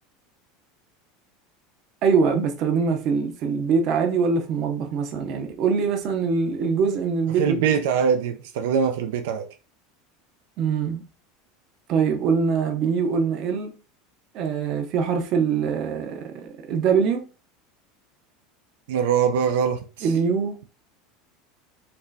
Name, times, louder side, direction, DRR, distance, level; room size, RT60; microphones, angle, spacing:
voice 1, 2.0-7.7 10.6-11.0 11.9-13.7 14.3-17.2 20.0-20.6, right 5 dB, 45° right, 0.7 m, -23 dB
voice 2, 7.4-9.5 18.9-20.1, right 7 dB, 80° right, 0.5 m, -23 dB
4.4 x 3.0 x 2.7 m
supercardioid pair, 150°, 0 cm